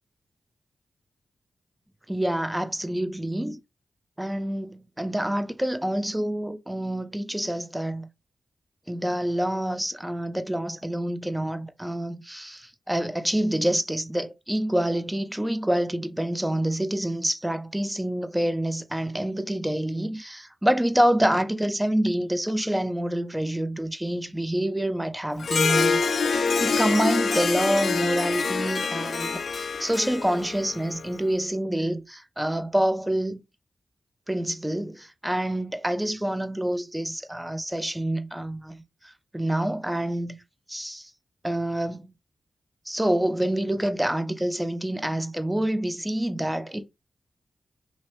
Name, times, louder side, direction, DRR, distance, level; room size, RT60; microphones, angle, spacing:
voice 1, 2.1-3.6 4.2-8.1 8.9-26.0 26.3-33.4 34.3-38.8 39.3-40.4 40.7-41.1 41.4-42.1 42.9-46.8, right 1 dB, 10° right, 0.6 m, -27 dB
Harp, 25.4-31.1, left 5 dB, 75° left, 0.4 m, -26 dB
2.8 x 2.8 x 3.0 m
cardioid pair, 50°, 0 cm